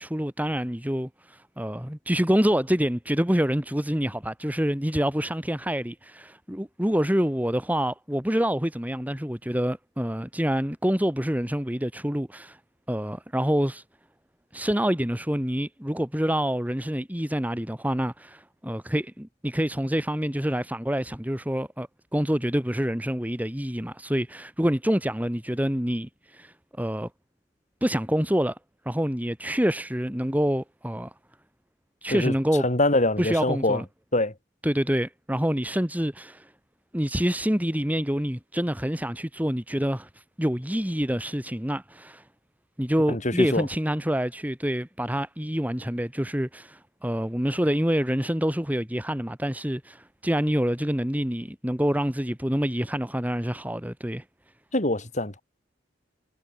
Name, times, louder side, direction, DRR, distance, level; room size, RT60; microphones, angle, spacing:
voice 1, 0.0-12.6 12.9-13.8 14.5-27.1 27.8-28.6 28.9-31.1 32.0-32.6 33.2-33.8 34.6-36.5 36.9-40.1 40.4-42.2 42.8-54.2, equal, 10° right, 2.5 m, -27 dB
voice 2, 32.6-33.8 34.1-34.3 43.1-43.7 54.7-55.4, left 2 dB, 40° left, 4.4 m, -24 dB
head